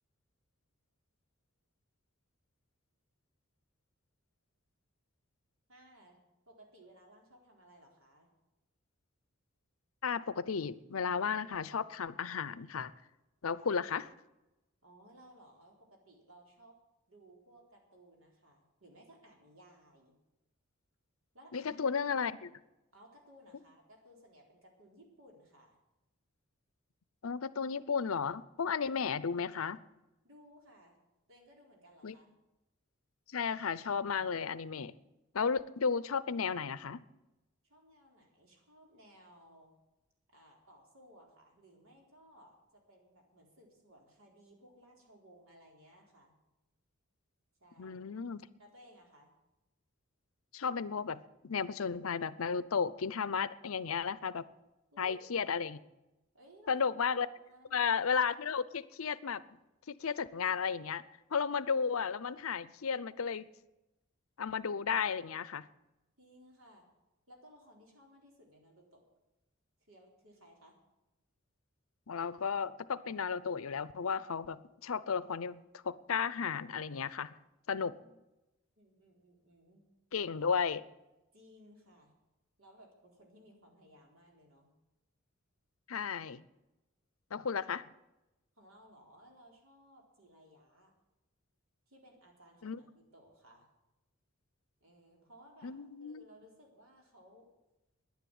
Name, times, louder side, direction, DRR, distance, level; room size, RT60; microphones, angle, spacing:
voice 1, 5.7-6.2 6.5-8.3 14.8-16.8 17.1-20.2 21.3-21.7 22.9-25.8 30.2-31.0 31.3-32.3 37.6-39.7 40.3-46.4 47.6-48.0 48.6-49.3 54.9-55.3 56.3-57.9 66.2-66.9 67.3-69.0 69.8-70.8 78.0-78.2 78.8-79.8 81.3-82.1 82.6-84.7 88.6-90.9 91.9-93.7 94.8-95.7 96.0-97.5, equal, 75° right, 0 dB, 4.1 m, -60 dB
voice 2, 10.0-12.9 13.4-14.1 21.5-22.5 27.2-29.8 32.0-32.2 33.3-34.9 35.3-37.0 47.8-48.5 50.5-54.4 55.0-55.8 56.7-57.3 57.7-59.4 59.9-61.0 61.3-63.5 64.4-65.7 72.1-77.3 77.7-78.0 80.1-80.8 85.9-86.4 87.3-87.9 92.6-92.8 95.6-96.2, left 6 dB, 80° left, 17 dB, 0.6 m, -34 dB
10.5 x 10.5 x 9.4 m, 0.98 s
head